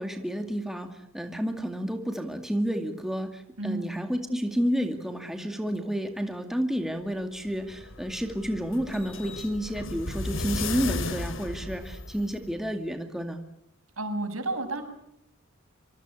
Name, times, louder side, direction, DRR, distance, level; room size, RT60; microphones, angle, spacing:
voice 1, 0.0-13.4, equal, ahead, 5 dB, 2.2 m, -30 dB
voice 2, 3.6-3.9 14.0-14.8, right 2 dB, 85° right, 6 dB, 6.6 m, -31 dB
sound 1, 7.5-12.5, left 2 dB, 65° left, 2.8 m, -35 dB
25.5 x 25.5 x 8.4 m, 0.74 s
head